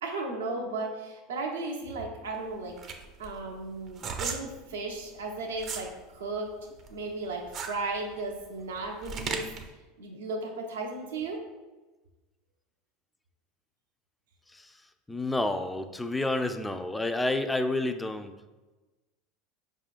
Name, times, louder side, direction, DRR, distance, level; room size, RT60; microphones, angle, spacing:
voice 1, 0.0-2.7 3.2-6.5 6.9-9.5 10.0-11.4, right 3 dB, 85° right, 1 dB, 0.7 m, -35 dB
sound 1, 2.3-5.9 6.3-9.7, right 5 dB, 45° right, 0.5 m, -37 dB
voice 2, 15.1-18.3, left 2 dB, 10° left, 8 dB, 0.3 m, -29 dB
4.9 x 3.6 x 2.5 m, 1.2 s
hypercardioid pair, 90°, 0 cm